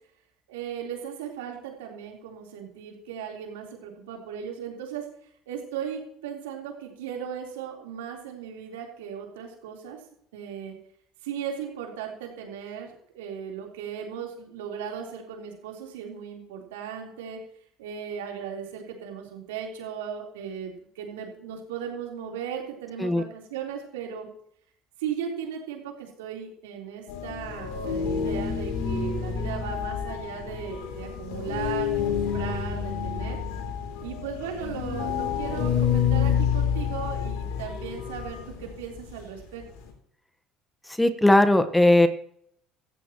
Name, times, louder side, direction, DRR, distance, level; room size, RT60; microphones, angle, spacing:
voice 1, 0.5-5.1 5.5-10.0 10.3-10.8 11.2-17.4 17.8-24.3 25.0-33.4 34.0-39.6, right 8 dB, 85° right, 0 dB, 3.8 m, -37 dB
sound 1, 27.1-39.9, left 7 dB, 80° left, 3.1 m, -29 dB
voice 2, 40.9-42.1, left 1 dB, 10° left, 10 dB, 1.2 m, -19 dB
16.5 x 15.0 x 3.0 m, 0.69 s
hypercardioid pair, 75°, 0 cm